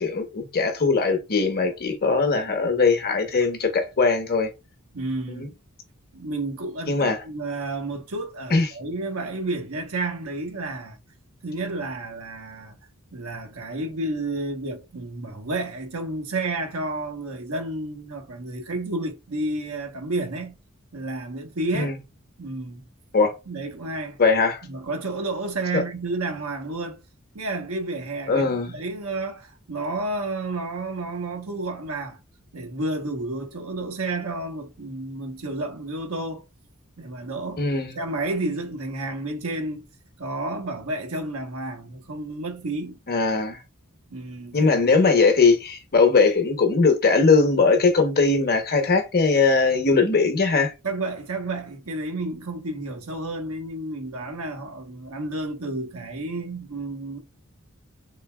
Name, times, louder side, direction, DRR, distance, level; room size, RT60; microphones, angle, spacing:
voice 1, 0.0-4.5 5.3-5.5 6.9-7.2 8.5-8.7 21.7-21.9 23.1-23.3 24.2-24.6 25.7-25.8 28.3-28.8 37.6-38.0 43.1-43.6 44.5-50.7, left 4 dB, 45° left, 1.0 m, -20 dB
voice 2, 4.9-5.5 6.1-11.0 11.4-12.8 13.1-20.5 20.9-21.9 22.4-22.9 23.5-24.2 24.6-27.0 27.3-32.2 32.5-36.4 37.0-37.7 37.9-39.8 40.2-43.0 44.1-44.7 50.8-57.2, right 2 dB, 85° right, 1.1 m, -31 dB
3.8 x 3.3 x 2.2 m
head